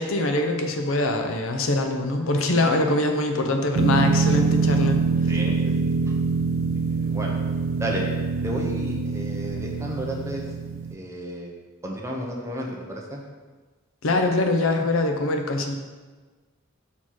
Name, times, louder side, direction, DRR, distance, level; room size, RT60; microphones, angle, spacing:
voice 1, 0.0-5.0 14.0-15.8, left 2 dB, 80° left, 5 dB, 0.7 m, -23 dB
sound 1, 3.7-10.9, right 4 dB, 80° right, 0.4 m, -24 dB
voice 2, 5.3-5.7 6.0-6.1 6.9-7.4 7.8-8.1 8.4-10.4 10.9-11.5 11.8-13.2, equal, 15° right, -1 dB, 0.9 m, -32 dB
5.6 x 4.3 x 4.7 m, 1.3 s
head